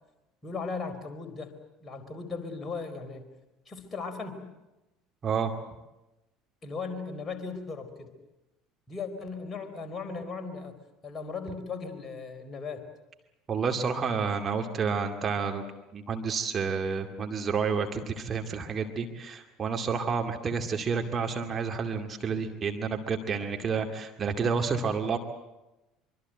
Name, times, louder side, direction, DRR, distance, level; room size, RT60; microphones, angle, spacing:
voice 1, 0.4-1.5 1.8-3.2 3.7-4.4 6.6-8.1 8.9-10.7 11.0-12.8, left 4 dB, 25° left, 6 dB, 4.6 m, -37 dB
voice 2, 13.5-15.6 15.9-25.2, right 5 dB, 30° right, 4 dB, 2.3 m, -30 dB
25.0 x 24.5 x 7.9 m, 0.98 s
figure-of-eight pair, 65°, 0 cm